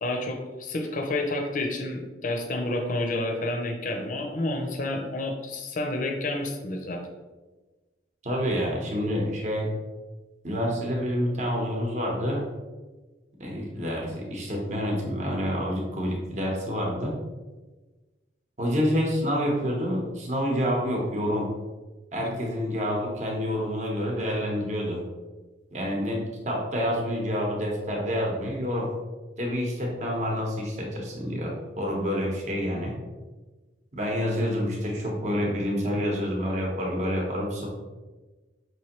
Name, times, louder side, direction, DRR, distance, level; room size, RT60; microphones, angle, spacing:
voice 1, 0.0-7.0 22.2-22.3, left 2 dB, 45° left, 2 dB, 0.5 m, -29 dB
voice 2, 8.2-9.7 10.4-12.4 13.4-17.1 18.6-21.5 22.1-25.0 25.7-26.2 26.5-28.9 29.4-32.9 33.9-37.7, equal, 40° right, -1 dB, 0.8 m, -28 dB
5.2 x 3.1 x 2.9 m, 1.2 s
head